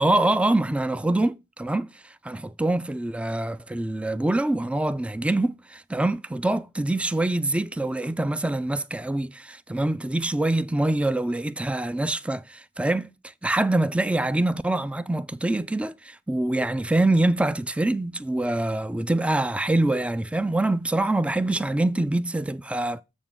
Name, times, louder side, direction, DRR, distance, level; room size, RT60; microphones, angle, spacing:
voice 1, 0.0-1.9 2.2-13.1 13.4-23.0, right 2 dB, 5° right, 0.3 m, -25 dB
7.1 x 7.1 x 3.6 m
head